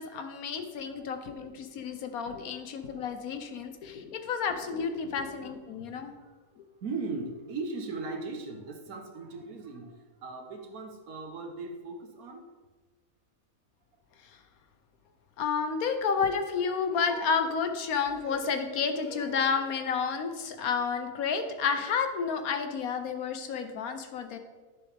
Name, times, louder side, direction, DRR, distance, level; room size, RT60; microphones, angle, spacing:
voice 1, 0.0-6.1 15.4-24.4, left 6 dB, 90° left, 7 dB, 1.3 m, -31 dB
voice 2, 5.7-6.4 6.8-12.5, right 3 dB, 90° right, 3 dB, 1.6 m, -39 dB
11.0 x 6.6 x 3.5 m, 1.3 s
omnidirectional pair, 1.5 m